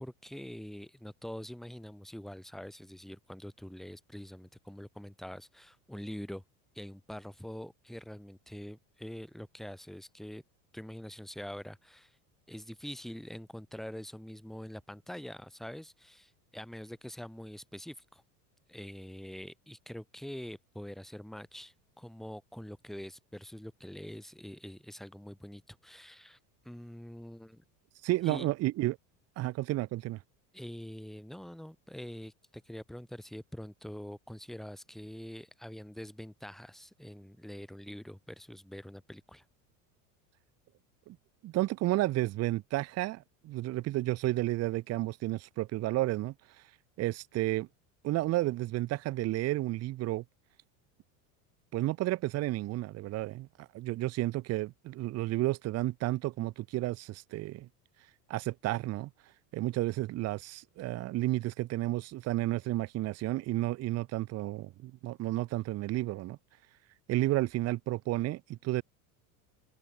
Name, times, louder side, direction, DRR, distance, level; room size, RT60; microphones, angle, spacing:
voice 1, 0.0-6.4 6.8-10.4 10.7-12.2 12.5-18.2 18.7-26.4 26.6-27.6 28.2-28.5 30.5-39.4, equal, ahead, 1.7 m, -45 dB
voice 2, 28.0-29.0 29.4-30.2 41.1-41.2 41.4-46.3 47.0-47.7 48.0-50.2 51.7-57.7 58.3-59.1 59.5-66.4 67.1-68.8, right 17 dB, 35° right, 0.6 m, -32 dB
supercardioid pair, 110°, 43 cm